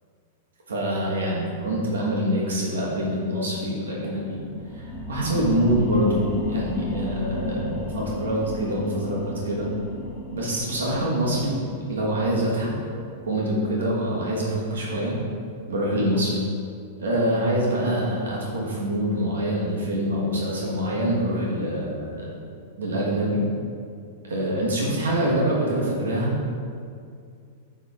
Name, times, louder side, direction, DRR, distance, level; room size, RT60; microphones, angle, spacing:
voice 1, 0.7-4.4 5.1-6.2 6.5-9.7 10.3-11.6 11.9-12.7 13.2-15.1 15.7-16.4 17.0-22.3 22.8-23.4 24.2-26.3, right 1 dB, 90° right, -4 dB, 1.4 m, -25 dB
sound 1, 4.3-15.4 15.9-16.0, left 2 dB, 20° left, 0.8 m, -34 dB
8.0 x 3.6 x 3.6 m, 2.3 s
hypercardioid pair, 125°, 0 cm